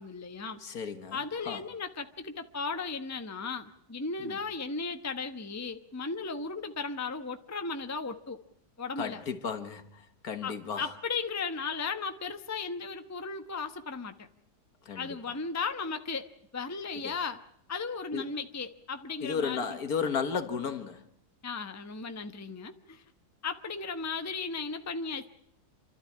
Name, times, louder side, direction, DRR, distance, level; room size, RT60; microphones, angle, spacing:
voice 1, 0.0-0.6 1.1-8.4 8.8-9.2 10.4-14.3 15.0-16.3 16.5-17.4 17.7-19.7 21.4-23.0 23.4-25.3, left 4 dB, 10° left, 0.9 m, -36 dB
voice 2, 0.6-1.2 1.5-1.6 4.2-4.4 9.0-9.8 10.2-10.9 14.9-15.1 17.0-17.1 18.1-18.3 19.2-21.0, left 6 dB, 60° left, 1.9 m, -33 dB
28.0 x 13.0 x 8.6 m
omnidirectional pair, 1.8 m